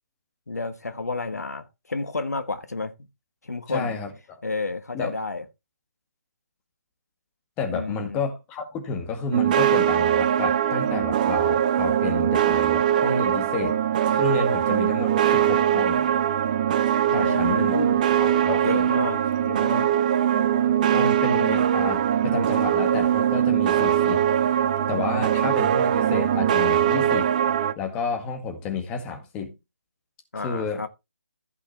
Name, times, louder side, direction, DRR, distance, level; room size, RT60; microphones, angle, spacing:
voice 1, 0.5-2.9 3.4-4.0 4.4-5.4 7.7-8.2 17.1-18.0 18.6-19.9 30.3-30.9, left 3 dB, 80° left, 1.4 m, -31 dB
voice 2, 3.7-4.1 4.9-5.1 7.6-13.8 14.1-16.1 17.1-17.8 18.2-18.9 20.9-24.2 24.9-27.3 27.8-29.6 30.4-30.9, left 5 dB, 15° left, 2.0 m, -31 dB
sound 1, 9.3-27.7, right 10 dB, 30° right, 0.7 m, -21 dB
15.0 x 5.8 x 3.4 m
figure-of-eight pair, 150°, 9 cm